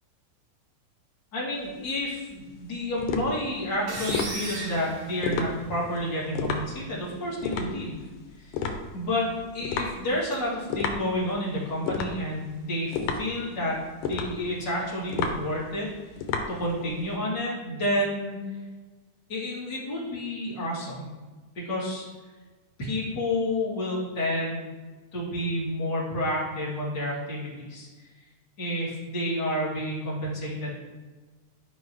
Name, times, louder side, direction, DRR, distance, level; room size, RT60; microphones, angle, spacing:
voice 1, 1.3-8.0 8.4-8.6 8.9-9.3 9.5-13.8 14.0-15.9 16.5-18.4 19.3-21.1 21.5-22.1 22.8-24.7 25.1-27.9 28.6-30.7, left 1 dB, 35° left, -7 dB, 3.1 m, -30 dB
sound 1, 1.6-17.1, left 5 dB, 85° left, 2.3 m, -33 dB
sound 2, 3.9-5.8, right 2 dB, 75° right, 2.9 m, -36 dB
12.5 x 5.2 x 3.1 m, 1.3 s
omnidirectional pair, 3.5 m